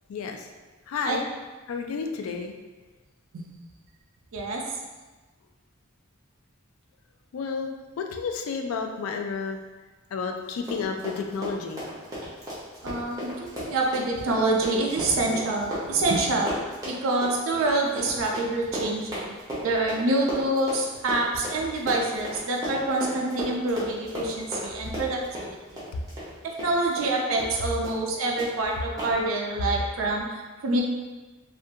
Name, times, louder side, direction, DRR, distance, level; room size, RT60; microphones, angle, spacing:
voice 1, 0.1-0.4 0.9-1.2 1.7-2.5 7.3-9.6 10.1-11.8, left 5 dB, 85° left, 4 dB, 0.3 m, -31 dB
voice 2, 4.3-4.6 12.8-16.6 16.8-19.3 19.6-25.5 26.4-30.8, right 2 dB, 80° right, 0 dB, 0.4 m, -26 dB
Run, 10.5-27.1 27.4-27.5 27.8-28.1 28.4-28.5 29.0-29.1, equal, 15° right, 0.6 m, -35 dB
2.4 x 2.2 x 2.7 m, 1.2 s
head